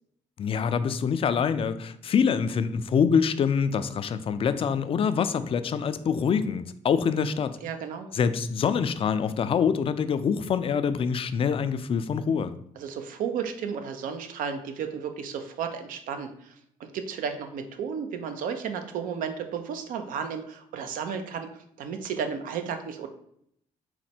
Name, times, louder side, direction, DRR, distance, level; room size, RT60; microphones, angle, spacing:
voice 1, 0.4-7.6 8.1-12.5, left 6 dB, 40° left, 11 dB, 0.3 m, -25 dB
voice 2, 7.6-8.1 12.8-16.5 16.8-21.5 21.8-23.1, right 6 dB, 75° right, 7 dB, 0.5 m, -33 dB
4.2 x 2.1 x 4.2 m, 0.71 s
supercardioid pair, 75°, 14 cm